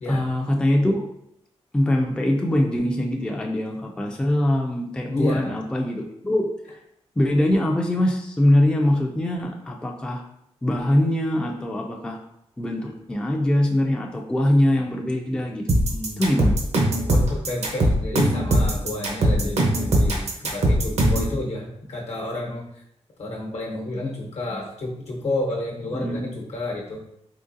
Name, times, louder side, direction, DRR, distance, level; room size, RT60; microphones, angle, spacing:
voice 1, 0.1-1.1 1.7-6.5 7.2-10.2 10.6-12.2 12.6-15.7 16.2-16.6 25.9-26.3, left 1 dB, 10° left, 1 dB, 0.3 m, -22 dB
voice 2, 5.1-5.6 15.7-16.4 17.1-22.6 23.2-27.0, left 2 dB, 75° left, -1 dB, 0.9 m, -30 dB
sound 1, 15.7-21.3, right 1 dB, 70° right, 0.7 m, -20 dB
3.7 x 3.1 x 2.6 m, 0.78 s
wide cardioid pair, 150°, 11 cm